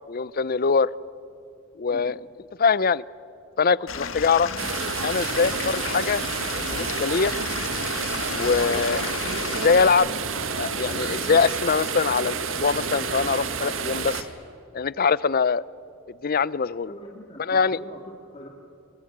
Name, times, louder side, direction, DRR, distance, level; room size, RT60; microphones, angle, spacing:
voice 1, 0.1-0.9 1.8-2.1 2.6-3.0 3.6-4.5 5.0-6.2 6.6-7.3 8.3-9.0 9.4-10.1 10.6-14.3 14.7-15.6 16.2-16.9 17.5-17.8, left 5 dB, 45° left, 20 dB, 0.6 m, -23 dB
Stream / Liquid, 3.9-9.9, left 6 dB, 70° left, 1.7 m, -33 dB
sound 1, 4.6-14.2, right 5 dB, 70° right, 2.0 m, -29 dB
voice 2, 16.9-18.0 18.3-18.5, left 1 dB, 30° left, -2 dB, 2.5 m, -42 dB
28.5 x 23.0 x 8.8 m, 2.6 s
head